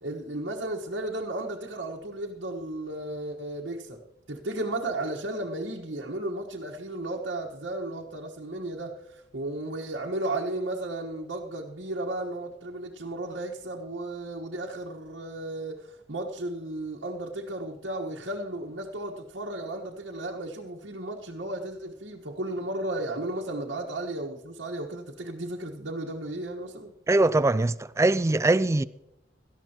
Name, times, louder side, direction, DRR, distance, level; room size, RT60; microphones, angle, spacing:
voice 1, 0.0-4.0 4.3-26.9, right 1 dB, 75° right, 1.4 m, -34 dB
voice 2, 27.1-28.8, right 2 dB, 15° right, 0.3 m, -22 dB
18.0 x 12.5 x 3.0 m
head